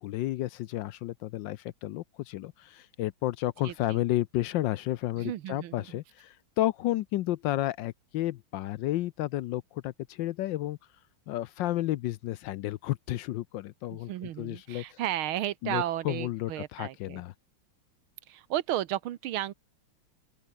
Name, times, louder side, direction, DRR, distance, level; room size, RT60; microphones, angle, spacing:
voice 1, 0.0-10.8 11.3-14.1 14.4-15.0 15.6-17.3, left 15 dB, 75° left, 1.2 m, -32 dB
voice 2, 3.6-4.0 5.2-5.8 13.9-17.2 18.3-19.5, right 13 dB, 80° right, 1.8 m, -33 dB
open air
omnidirectional pair, 2.3 m